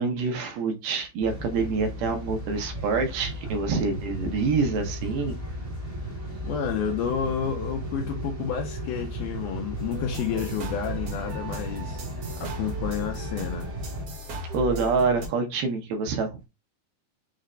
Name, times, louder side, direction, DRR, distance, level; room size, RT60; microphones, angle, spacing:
voice 1, 0.0-5.3 14.5-16.5, right 4 dB, 85° right, 2.9 m, -26 dB
sound 1, 1.2-14.0, right 1 dB, 35° right, 0.5 m, -35 dB
voice 2, 6.4-12.0 12.4-13.7, left 8 dB, 80° left, 1.9 m, -30 dB
sound 2, 9.8-15.3, right 1 dB, 60° right, 1.7 m, -36 dB
6.4 x 2.2 x 3.7 m
omnidirectional pair, 4.3 m